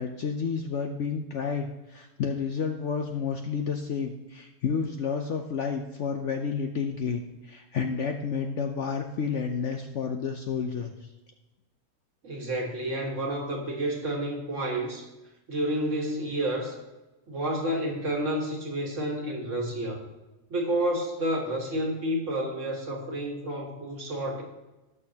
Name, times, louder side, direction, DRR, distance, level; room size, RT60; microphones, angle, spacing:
voice 1, 0.0-11.1, left 6 dB, 60° left, 4 dB, 0.8 m, -30 dB
voice 2, 12.2-15.1 15.5-16.8 17.3-20.0 20.5-24.4, right 1 dB, 50° right, 1 dB, 1.8 m, -30 dB
18.0 x 6.5 x 2.8 m, 1.1 s
omnidirectional pair, 1.7 m